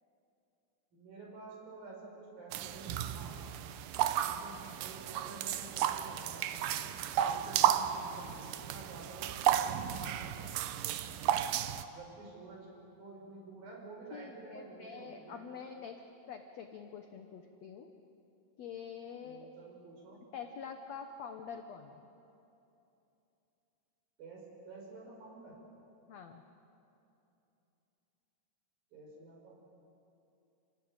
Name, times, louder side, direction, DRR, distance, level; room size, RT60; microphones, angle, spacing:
voice 1, 0.9-3.4 4.1-6.9 7.2-11.0 11.8-12.7 13.0-15.5 19.2-20.2 24.2-25.6 28.9-29.5, right 2 dB, 60° right, -1 dB, 7.2 m, -50 dB
sound 1, 2.5-11.9, right 11 dB, 80° right, 2.1 m, -33 dB
voice 2, 14.1-16.0 16.3-17.9 18.6-19.5 20.3-22.0 26.1-26.4, left 6 dB, 85° left, 5 dB, 1.5 m, -46 dB
29.0 x 18.5 x 8.9 m, 2.8 s
omnidirectional pair, 4.7 m